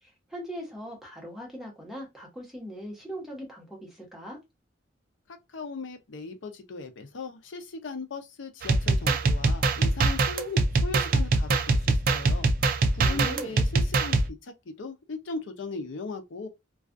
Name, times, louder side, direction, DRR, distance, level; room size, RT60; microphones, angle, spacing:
voice 1, 0.0-4.4 13.0-13.6, equal, ahead, 1.0 m, -40 dB
voice 2, 5.5-16.5, left 3 dB, 85° left, 0.6 m, -38 dB
sound 1, 8.6-14.3, right 3 dB, 50° right, 0.4 m, -23 dB
2.3 x 2.3 x 2.4 m
head